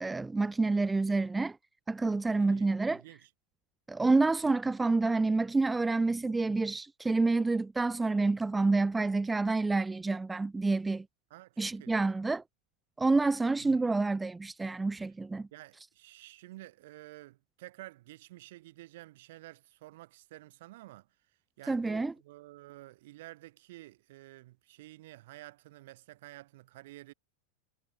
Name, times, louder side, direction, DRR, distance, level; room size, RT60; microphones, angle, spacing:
voice 1, 0.0-1.6 1.9-3.0 3.9-11.1 11.6-12.4 13.0-15.5 21.7-22.1, right 3 dB, 10° right, 0.4 m, -28 dB
voice 2, 2.3-3.3 11.3-12.0 13.6-13.9 15.5-21.1 21.6-27.1, right 17 dB, 55° right, 1.3 m, -51 dB
figure-of-eight pair, 90°, 0 cm